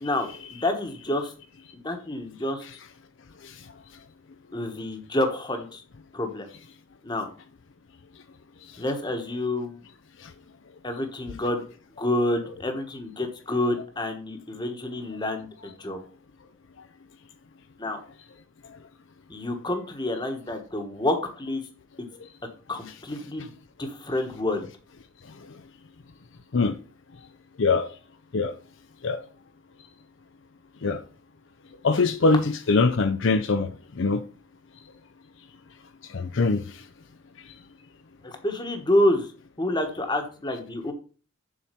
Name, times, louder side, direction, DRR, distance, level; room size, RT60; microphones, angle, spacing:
voice 1, 0.0-1.3 1.8-2.7 4.5-5.8 6.1-6.5 7.0-7.3 8.8-9.8 10.8-11.6 12.0-16.0 17.8-18.0 19.3-21.7 22.0-22.1 22.7-23.5 23.8-24.7 38.2-39.3 39.6-40.9, left 1 dB, 20° left, 1.2 m, -28 dB
voice 2, 31.8-32.4 32.7-33.7 34.0-34.2 36.1-36.6, left 3 dB, 60° left, 0.5 m, -22 dB
7.4 x 4.4 x 6.8 m
head